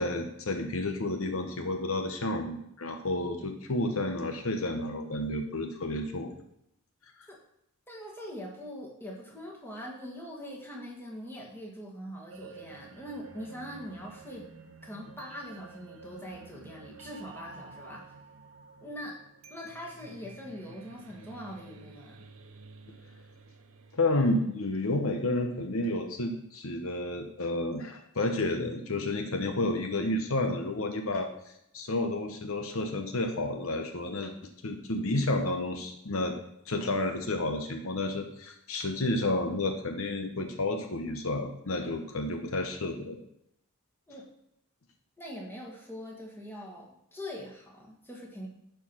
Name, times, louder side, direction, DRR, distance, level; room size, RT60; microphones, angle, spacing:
voice 1, 0.0-6.3 23.9-31.3 31.7-34.3 34.6-36.4 36.7-43.2, left 2 dB, 70° left, 5 dB, 0.9 m, -31 dB
voice 2, 7.9-14.5 14.8-18.1 18.8-19.2 19.5-22.2 44.1-44.3 45.2-48.5, equal, 10° left, -2 dB, 1.9 m, -42 dB
sound 1, 12.3-25.3, right 4 dB, 70° right, 0.9 m, -51 dB
11.0 x 4.7 x 5.6 m, 0.77 s
head